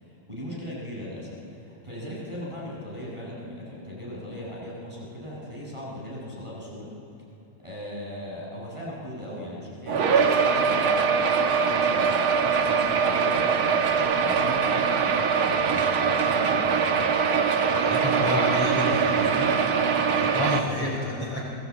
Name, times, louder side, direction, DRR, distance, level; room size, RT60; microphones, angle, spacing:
voice 1, 0.3-6.9 7.6-13.8 14.2-16.8, left 1 dB, 5° right, -5 dB, 7.2 m, -38 dB
sound 1, 9.9-20.6, right 6 dB, 75° right, 1.2 m, -23 dB
voice 2, 17.7-19.7 20.1-21.4, left 1 dB, 40° left, -3 dB, 5.0 m, -29 dB
28.5 x 21.5 x 8.6 m, 2.7 s
omnidirectional pair, 4.5 m